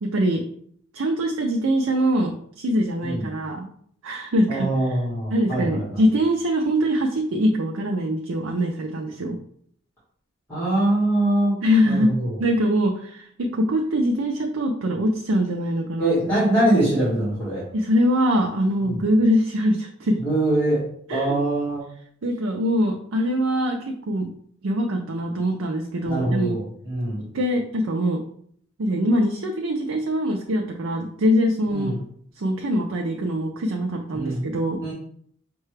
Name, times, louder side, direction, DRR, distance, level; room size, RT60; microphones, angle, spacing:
voice 1, 0.0-0.4 0.9-3.7 4.0-5.0 5.3-9.4 11.6-16.4 17.7-20.2 21.1-21.4 22.2-24.3 24.6-26.5 27.2-28.2 28.8-31.9 32.4-34.8, equal, 80° right, 1 dB, 0.5 m, -23 dB
voice 2, 4.5-6.0 10.5-11.6 11.8-12.3 16.0-17.6 18.8-19.0 20.2-20.8 21.1-21.8 26.0-27.2 31.7-32.0 34.1-34.4 34.8-34.9, right 1 dB, 10° left, -11 dB, 1.6 m, -23 dB
5.6 x 2.2 x 3.2 m, 0.63 s
head